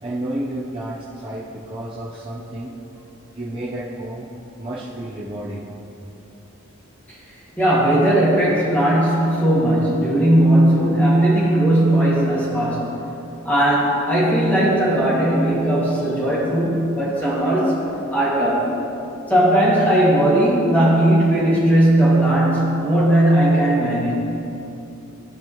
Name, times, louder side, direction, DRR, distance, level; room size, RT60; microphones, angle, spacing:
voice 1, 0.0-2.7 3.3-4.3 4.6-5.7, right 1 dB, 25° right, -8 dB, 0.7 m, -31 dB
voice 2, 7.6-13.0 13.4-17.8 18.1-18.7 19.3-24.1, right 1 dB, 10° left, -8 dB, 2.0 m, -17 dB
16.0 x 5.4 x 3.1 m, 2.9 s
head